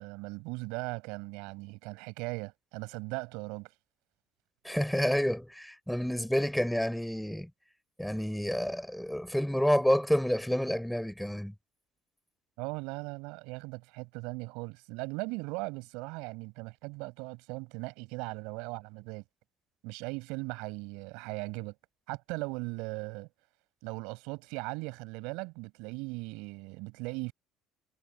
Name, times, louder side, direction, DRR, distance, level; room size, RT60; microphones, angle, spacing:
voice 1, 0.0-3.7 12.6-19.2 19.8-21.7 22.1-23.3 23.8-27.3, right 26 dB, 85° right, 5.3 m, -38 dB
voice 2, 4.6-7.5 8.0-11.5, equal, ahead, 4.5 m, -29 dB
supercardioid pair, 90°, 0 cm